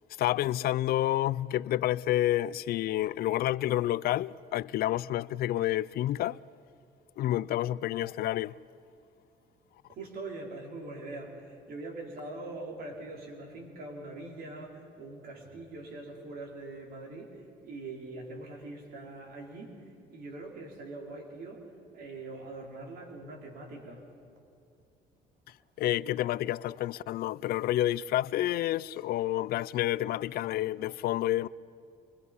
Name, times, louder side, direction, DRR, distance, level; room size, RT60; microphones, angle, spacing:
voice 1, 0.2-6.4 7.2-8.6 25.8-31.5, left 14 dB, 65° left, 0.4 m, -29 dB
voice 2, 9.9-21.7 21.9-24.0, right 2 dB, 65° right, 4.9 m, -43 dB
26.0 x 23.5 x 5.5 m
cardioid pair, 110°, 17 cm